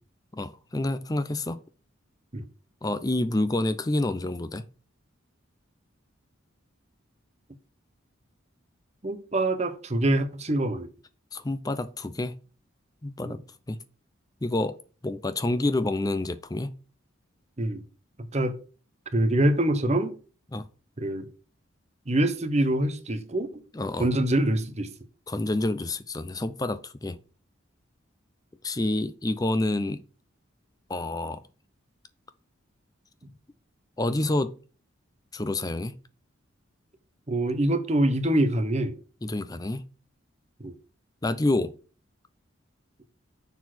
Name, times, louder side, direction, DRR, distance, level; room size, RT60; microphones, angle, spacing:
voice 1, 0.3-1.6 2.8-4.6 11.3-12.3 13.0-13.4 13.7-13.8 14.4-14.8 15.0-16.7 20.5-20.7 23.7-24.1 25.3-27.2 28.6-30.0 30.9-31.4 34.0-34.6 35.3-35.9 39.2-39.8 41.2-41.7, left 2 dB, 20° left, 0.5 m, -28 dB
voice 2, 9.0-10.9 13.3-13.4 17.6-17.8 18.3-18.6 19.1-20.2 21.0-21.3 22.1-23.5 24.0-24.9 37.3-39.0 40.6-40.8, right 1 dB, 35° right, 0.9 m, -25 dB
7.0 x 4.1 x 6.1 m
head